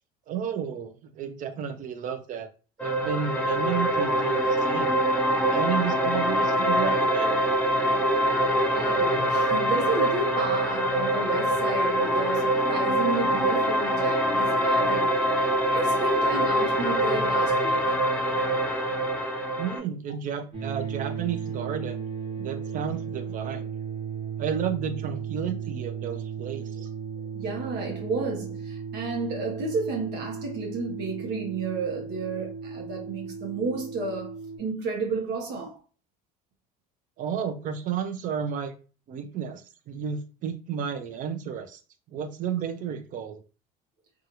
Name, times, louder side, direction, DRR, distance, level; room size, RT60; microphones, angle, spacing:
voice 1, 0.3-2.5 2.8-5.0 5.5-7.5 19.6-22.0 22.4-23.7 24.4-26.9 37.2-38.7 39.1-39.6 39.9-41.8 42.1-43.4, right 8 dB, 45° right, 0.5 m, -32 dB
sound 1, 2.8-19.8, equal, 5° left, 0.7 m, -24 dB
voice 2, 8.7-15.1 15.7-17.9 27.3-35.8, right 3 dB, 65° right, 0.9 m, -32 dB
sound 2, 20.5-34.6, right 7 dB, 30° right, 1.3 m, -35 dB
2.7 x 2.4 x 2.7 m
supercardioid pair, 90°, 19 cm